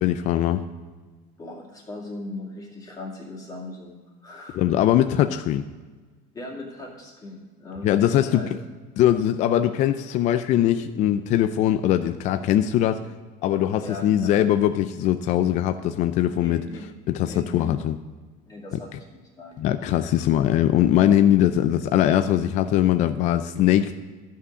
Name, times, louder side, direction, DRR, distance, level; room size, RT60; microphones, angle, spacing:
voice 1, 0.0-0.6 4.5-5.7 7.8-8.6 9.0-13.1 13.4-16.6 17.1-18.0 19.6-23.9, left 11 dB, 45° left, 10 dB, 0.4 m, -21 dB
voice 2, 1.4-4.6 6.3-8.5 13.8-14.3 16.3-16.9 17.2-17.7 18.4-19.6, left 2 dB, 20° left, -2 dB, 2.2 m, -39 dB
12.5 x 5.6 x 6.4 m, 1.4 s
cardioid pair, 150°, 17 cm